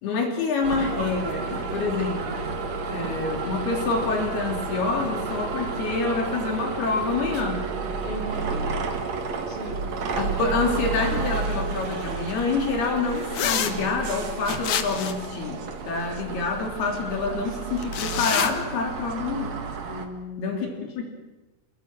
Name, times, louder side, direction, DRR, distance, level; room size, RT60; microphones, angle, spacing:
voice 1, 0.0-2.4 2.9-7.6 8.5-8.7 10.2-19.6 20.4-20.7 21.0-21.1, left 4 dB, 75° left, 2 dB, 5.3 m, -27 dB
sound 1, 0.6-20.1, right 4 dB, 50° right, 2.7 m, -31 dB
voice 2, 8.0-8.5 9.5-9.9 19.9-21.0, left 1 dB, 10° left, 1 dB, 3.2 m, -38 dB
sound 2, 13.3-13.7 14.5-15.3 17.8-18.5, left 9 dB, 60° left, 2.5 m, -26 dB
28.5 x 21.0 x 6.1 m, 1.1 s
omnidirectional pair, 4.5 m